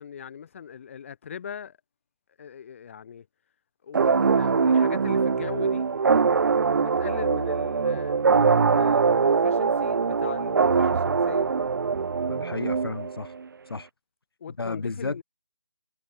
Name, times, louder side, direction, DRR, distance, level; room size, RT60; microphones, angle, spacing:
voice 1, 0.0-1.8 2.4-3.3 3.8-5.9 6.8-11.6 14.4-15.2, left 8 dB, 30° left, 3.1 m, -39 dB
sound 1, 3.9-13.4, right 5 dB, 55° right, 0.4 m, -22 dB
voice 2, 12.3-13.3 13.7-13.9 14.6-15.2, left 3 dB, 70° left, 2.9 m, -32 dB
figure-of-eight pair, 165°, 13 cm